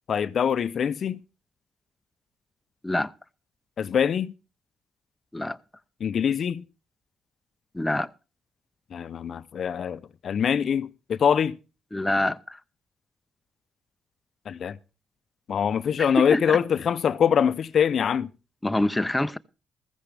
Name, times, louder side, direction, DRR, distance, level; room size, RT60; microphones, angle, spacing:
voice 1, 0.1-1.2 3.8-4.3 6.0-6.6 8.9-11.6 14.5-14.8 15.5-18.3, left 8 dB, 60° left, 0.6 m, -24 dB
voice 2, 7.7-8.1 11.9-12.6 16.0-16.6 18.6-19.4, left 1 dB, 10° left, 0.6 m, -26 dB
15.0 x 14.5 x 3.4 m
cardioid pair, 70°, 0 cm